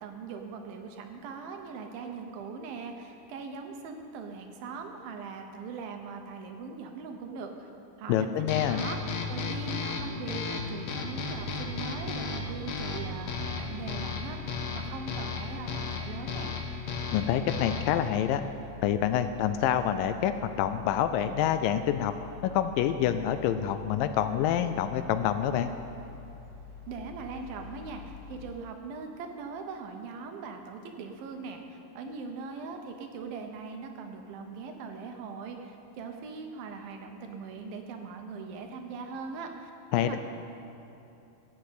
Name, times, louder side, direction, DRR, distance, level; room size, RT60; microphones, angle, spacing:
voice 1, 0.0-7.7 8.0-9.0 9.3-16.5 26.9-39.7 40.0-40.2, right 5 dB, 80° right, 4 dB, 2.8 m, -41 dB
voice 2, 8.1-8.9 17.1-18.4 18.8-22.1 22.4-25.7 39.9-40.2, left 10 dB, 80° left, 10 dB, 2.1 m, -27 dB
sound 1, 8.5-18.0, left 4 dB, 65° left, 1.9 m, -34 dB
sound 2, 11.1-28.6, left 7 dB, 40° left, 4.4 m, -48 dB
15.0 x 8.2 x 8.1 m, 2.8 s
omnidirectional pair, 4.2 m